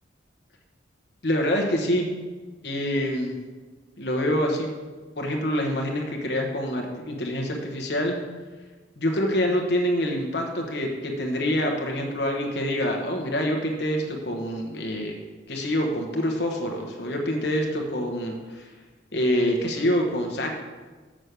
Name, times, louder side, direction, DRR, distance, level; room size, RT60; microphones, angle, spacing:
voice 1, 1.2-2.1 2.6-3.3 4.0-4.7 5.2-8.2 9.0-15.2 15.5-18.7 19.1-20.5, equal, 60° left, 1 dB, 1.1 m, -26 dB
6.4 x 6.2 x 6.8 m, 1.3 s
head